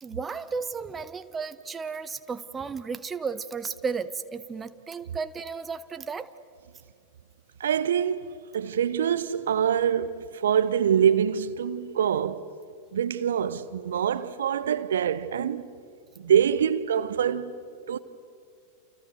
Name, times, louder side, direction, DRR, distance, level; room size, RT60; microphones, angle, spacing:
voice 1, 0.0-6.3, right 5 dB, 15° right, 0.9 m, -34 dB
voice 2, 7.6-12.5 12.9-15.7 16.2-17.5 17.9-18.0, right 8 dB, 65° right, 0.9 m, -25 dB
29.0 x 29.0 x 6.7 m
figure-of-eight pair, 90°, 0 cm